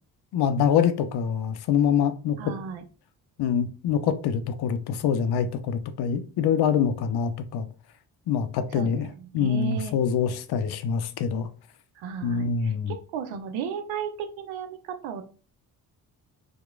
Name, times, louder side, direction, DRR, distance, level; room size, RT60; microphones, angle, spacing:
voice 1, 0.3-2.4 3.4-7.7 8.3-9.1 9.3-11.5 12.2-12.9, left 7 dB, 55° left, 0.5 m, -25 dB
voice 2, 2.4-2.8 8.7-9.9 12.0-15.2, right 7 dB, 75° right, 0.6 m, -35 dB
2.9 x 2.2 x 2.3 m
hypercardioid pair, 45°, 48 cm